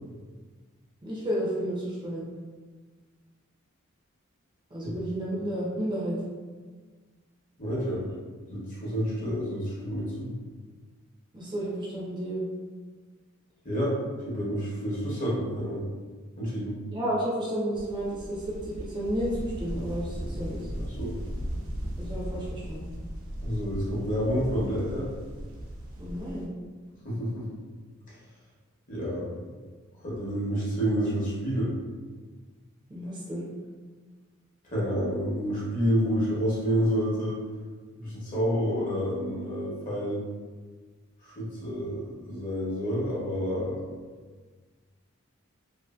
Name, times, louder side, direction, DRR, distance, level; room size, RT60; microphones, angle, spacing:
voice 1, 1.0-2.3 4.7-6.2 11.3-12.4 16.9-20.8 22.0-22.9 26.0-26.5 32.9-33.5, right 1 dB, 20° right, -5 dB, 0.4 m, -32 dB
voice 2, 7.6-8.1 8.5-10.3 13.6-14.0 14.2-15.8 16.4-16.8 20.9-21.1 23.4-25.1 27.0-27.4 28.9-29.2 30.0-31.7 34.6-37.4 38.0-40.2 41.2-43.8, equal, 40° left, -7 dB, 0.8 m, -29 dB
sound 1, 17.7-26.4, equal, 75° right, 0.5 m, -37 dB
2.5 x 2.5 x 2.3 m, 1.5 s
head